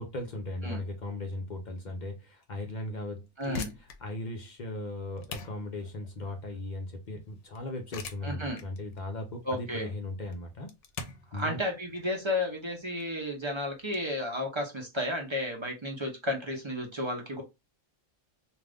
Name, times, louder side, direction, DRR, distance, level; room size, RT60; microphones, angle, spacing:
voice 1, 0.0-3.7 4.0-10.7 11.3-11.6, left 1 dB, 50° left, 0.6 m, -37 dB
sound 1, 3.2-14.0, left 4 dB, 70° left, 0.9 m, -45 dB
voice 2, 3.4-3.7 8.2-8.6 9.4-9.9 11.3-17.4, left 1 dB, 30° right, 0.6 m, -32 dB
2.5 x 2.5 x 3.3 m
omnidirectional pair, 1.3 m